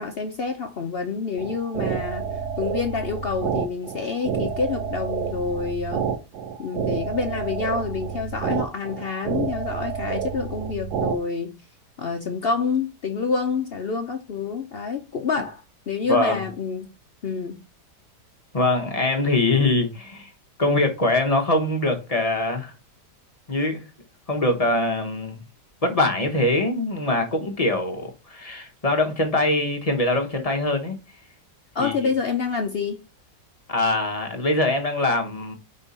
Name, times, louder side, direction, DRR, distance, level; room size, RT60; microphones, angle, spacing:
voice 1, 0.0-6.1 6.6-11.6 12.0-16.9 17.2-17.6 31.7-33.0, left 5 dB, 70° left, 0.5 m, -27 dB
sound 1, 1.4-11.2, right 7 dB, 75° right, 1.3 m, -29 dB
voice 2, 16.1-16.4 18.5-20.3 20.6-22.7 23.5-23.8 24.3-25.4 25.8-31.0 31.8-31.9 33.7-35.5, left 2 dB, 30° left, 0.8 m, -23 dB
5.3 x 4.3 x 4.1 m
omnidirectional pair, 1.8 m